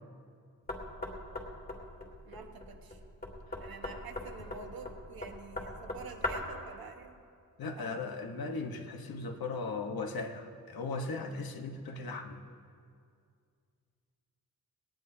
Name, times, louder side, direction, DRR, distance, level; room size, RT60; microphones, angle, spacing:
Knock, 0.7-6.6, left 2 dB, 25° left, 2.1 m, -40 dB
voice 1, 2.2-3.0 3.6-7.2 7.8-8.0, right 5 dB, 85° right, 4 dB, 1.4 m, -48 dB
voice 2, 7.6-12.4, left 3 dB, 85° left, 4 dB, 1.4 m, -37 dB
19.5 x 18.0 x 2.8 m, 2.3 s
wide cardioid pair, 140°, 35 cm